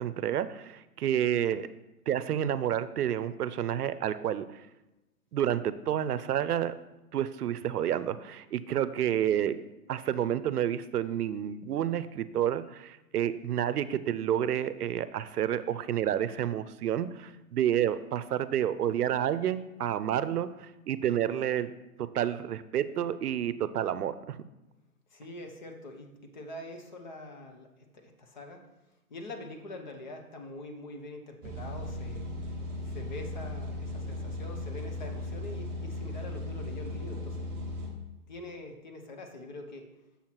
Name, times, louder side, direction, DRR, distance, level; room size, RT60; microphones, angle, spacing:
voice 1, 0.0-1.7 2.1-4.6 5.3-6.8 7.1-9.6 9.9-21.7 22.0-24.4, right 10 dB, 80° right, 14 dB, 0.6 m, -29 dB
voice 2, 25.1-28.7 29.1-32.3 32.8-37.5 38.3-39.9, left 1 dB, 30° left, 4 dB, 0.8 m, -44 dB
sound 1, 31.4-37.9, left 2 dB, 15° right, 1.1 m, -37 dB
7.2 x 5.7 x 4.5 m, 1.0 s
hypercardioid pair, 165°, 45 cm